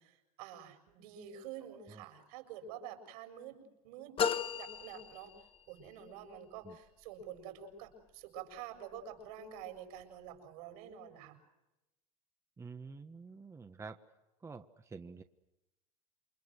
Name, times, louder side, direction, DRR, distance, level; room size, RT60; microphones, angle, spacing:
voice 1, 0.0-5.3 5.7-11.4, right 8 dB, 75° right, 5 dB, 7.3 m, -48 dB
voice 2, 1.7-2.0 6.6-6.8 12.6-14.0 14.4-15.2, right 4 dB, 15° right, 8 dB, 1.2 m, -49 dB
sound 1, 4.2-5.9, left 8 dB, 30° left, 1.2 m, -35 dB
28.5 x 25.0 x 6.4 m, 0.97 s
supercardioid pair, 120°, 19 cm